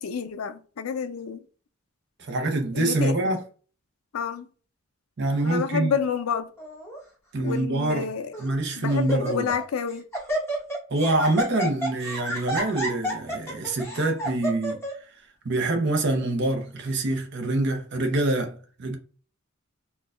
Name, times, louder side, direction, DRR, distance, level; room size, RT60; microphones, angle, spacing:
voice 1, 0.0-1.4 2.7-3.4 4.1-4.5 5.4-6.5 7.4-8.3 8.8-10.0, left 6 dB, 90° left, 0.4 m, -29 dB
voice 2, 2.2-3.4 5.2-5.9 7.3-8.1 8.4-9.5 10.9-15.2 15.4-19.0, right 2 dB, 55° right, 0.6 m, -25 dB
Laughter, 6.6-7.0 7.7-7.8 8.3-8.6 8.9-9.6 9.9-14.9, right 1 dB, 10° left, 1.1 m, -30 dB
4.4 x 2.3 x 2.3 m
head